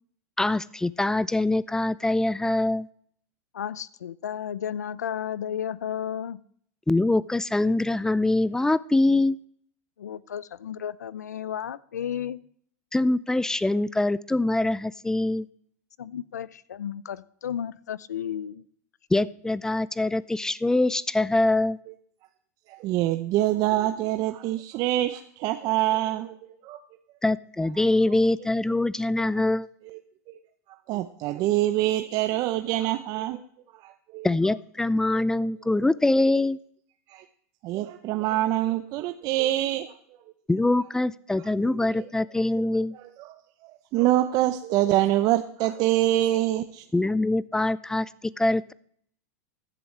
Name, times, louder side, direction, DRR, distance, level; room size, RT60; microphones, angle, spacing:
voice 1, 0.4-2.9 6.9-9.4 12.9-15.5 19.1-21.8 27.2-29.7 34.2-36.6 40.5-42.9 46.9-48.1 48.4-48.7, left 2 dB, 5° left, 20 dB, 0.4 m, -24 dB
voice 2, 3.5-6.4 10.0-12.4 16.0-18.7, left 9 dB, 90° left, 20 dB, 0.5 m, -33 dB
voice 3, 22.7-26.4 26.6-26.8 27.8-27.9 29.8-30.0 30.9-33.4 33.8-34.3 37.1-37.2 37.6-39.9 41.6-42.1 43.2-46.8, right 14 dB, 45° right, 8 dB, 0.7 m, -25 dB
15.0 x 11.0 x 3.2 m, 0.63 s
hypercardioid pair, 105°, 9 cm